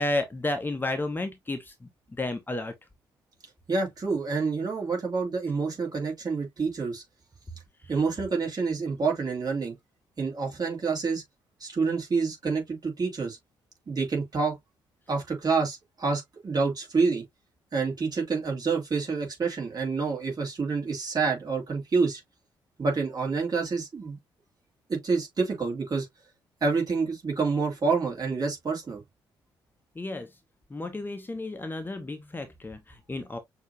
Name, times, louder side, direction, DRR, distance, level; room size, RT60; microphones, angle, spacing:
voice 1, 0.0-2.7 30.0-30.3 30.7-33.4, left 2 dB, 20° left, 0.9 m, -32 dB
voice 2, 3.7-7.0 7.9-9.7 10.2-11.2 11.6-13.4 13.9-14.6 15.1-17.2 17.7-22.2 22.8-24.2 24.9-26.1 26.6-29.0, right 4 dB, 35° right, 2.6 m, -28 dB
6.4 x 2.9 x 2.6 m
figure-of-eight pair, 40°, 11 cm